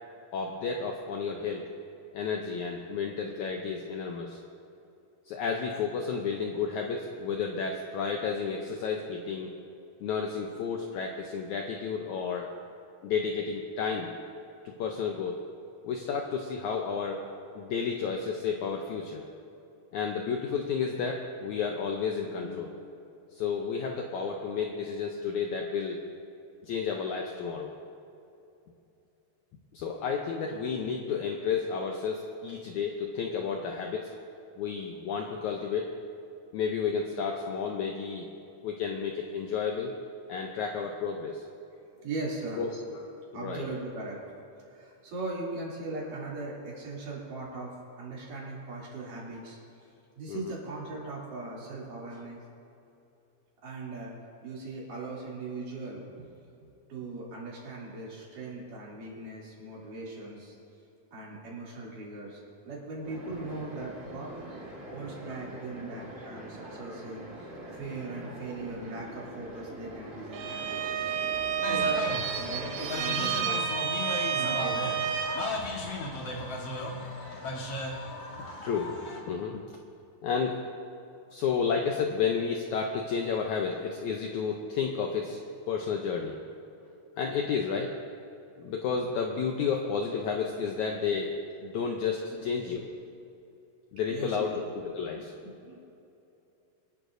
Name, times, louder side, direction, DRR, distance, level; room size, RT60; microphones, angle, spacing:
voice 1, 0.3-1.7 2.1-4.4 5.3-9.5 10.0-12.5 13.0-14.1 14.7-15.3 15.8-17.2 17.6-19.2 19.9-23.0 23.3-26.0 26.6-27.7 29.7-34.1 34.6-35.9 36.5-38.3 38.6-39.9 40.3-41.4 42.6-43.0 43.3-43.7 50.3-50.5 78.6-79.6 80.2-80.6 81.3-85.4 85.7-86.4 87.2-87.9 88.6-91.4 91.6-92.9 93.9-95.3, left 6 dB, 80° left, 1 dB, 1.7 m, -31 dB
voice 2, 41.9-42.6 43.3-44.2 44.7-49.6 50.2-52.4 53.6-54.1 54.4-56.3 56.6-60.6 61.1-64.3 64.9-70.9 71.6-72.0 72.4-73.7 74.3-75.1 92.3-92.5 94.1-94.6 95.1-95.8, right 3 dB, 60° right, -6 dB, 4.5 m, -39 dB
sound 1, 63.0-73.0, right 1 dB, 20° right, 1.8 m, -44 dB
Bowed string instrument, 70.3-75.6, right 8 dB, 75° right, 1.7 m, -30 dB
sound 2, 71.6-79.2, left 2 dB, 50° left, 2.1 m, -36 dB
26.0 x 11.0 x 2.7 m, 2.8 s
omnidirectional pair, 4.3 m